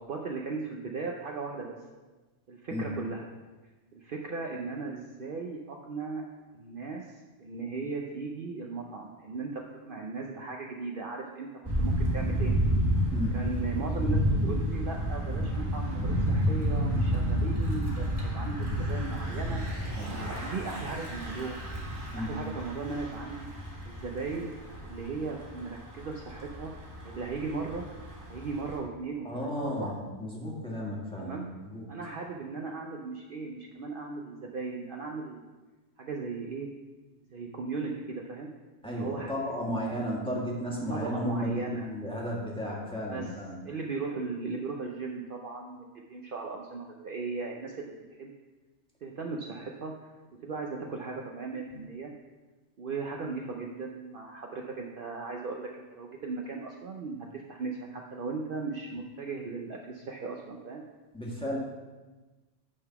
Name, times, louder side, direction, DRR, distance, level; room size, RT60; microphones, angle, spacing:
voice 1, 0.0-1.8 2.5-3.3 3.9-6.2 6.5-12.5 13.0-13.1 13.3-19.6 20.0-21.6 22.1-23.5 23.9-24.5 24.8-26.7 27.0-27.8 28.3-29.9 31.2-31.5 31.9-35.5 36.0-36.7 37.3-38.5 38.8-39.3 39.6-39.7 40.9-41.9 43.1-43.3 43.6-48.3 49.0-49.9 50.4-52.1 52.8-60.8, right 4 dB, 55° right, 1 dB, 0.7 m, -37 dB
Thunder / Bicycle, 11.6-28.8, equal, 20° right, 1.6 m, -30 dB
voice 2, 13.1-13.4 20.0-20.3 22.1-22.3 29.2-31.8 38.8-43.6 61.1-61.6, equal, 5° left, -4 dB, 1.6 m, -34 dB
9.4 x 3.8 x 5.8 m, 1.2 s
omnidirectional pair, 1.2 m